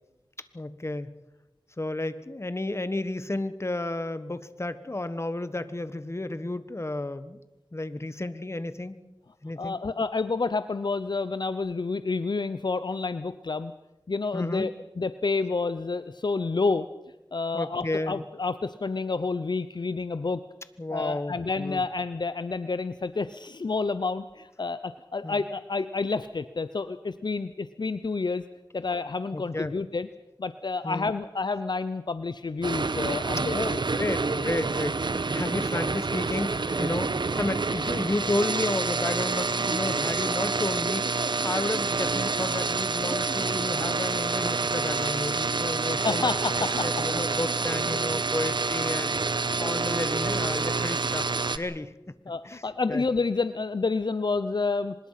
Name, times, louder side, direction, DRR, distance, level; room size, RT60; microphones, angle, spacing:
voice 1, 0.4-1.1 1.8-7.4 7.7-9.0 9.4-9.8 14.3-14.7 17.5-18.2 20.8-21.8 25.2-25.4 29.3-29.8 30.8-31.1 33.5-33.7 34.0-46.3 46.8-51.3 51.5-51.9 52.4-52.6 52.9-53.0, left 2 dB, 30° left, 12 dB, 1.4 m, -32 dB
voice 2, 9.6-13.7 14.1-16.9 17.3-20.4 20.9-28.4 28.7-30.1 30.4-33.8 35.3-35.4 46.0-46.9 52.3-55.0, left 4 dB, 60° left, 12 dB, 0.7 m, -29 dB
sound 1, 32.6-51.6, right 3 dB, 65° right, 1.1 m, -28 dB
25.0 x 20.5 x 5.8 m, 0.99 s
wide cardioid pair, 55°, 8 cm